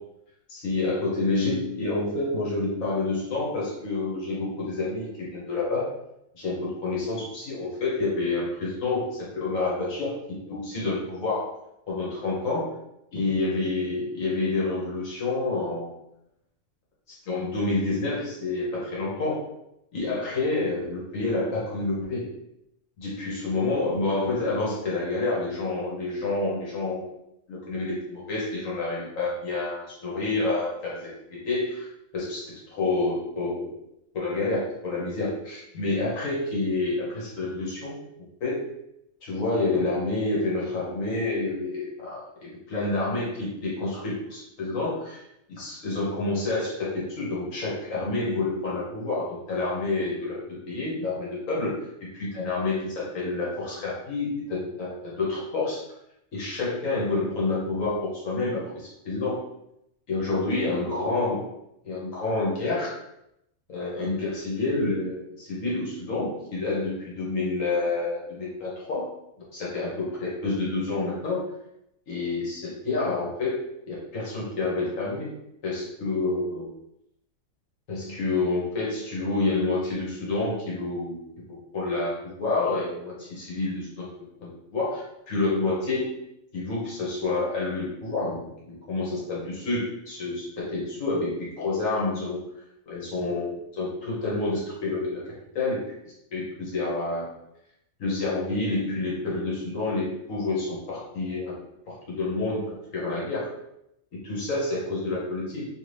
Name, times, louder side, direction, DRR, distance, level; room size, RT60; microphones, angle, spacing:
voice 1, 0.6-5.9 6.3-10.1 10.5-11.5 11.9-12.7 13.1-15.9 17.3-19.4 19.9-22.3 23.0-27.1 27.5-31.9 32.1-33.8 34.1-38.0 38.4-38.7 39.2-45.2 45.5-55.8 56.3-59.4 60.1-61.5 61.8-62.9 63.7-69.1 69.4-71.4 72.1-73.6 73.9-75.3 75.6-76.7 77.9-81.2 81.7-84.1 84.4-86.2 86.5-92.4 92.9-95.8 96.3-97.3 98.0-101.5 101.9-103.5 104.2-105.7, left 3 dB, 70° left, -5 dB, 1.4 m, -28 dB
2.9 x 2.7 x 3.2 m, 0.81 s
omnidirectional pair, 1.4 m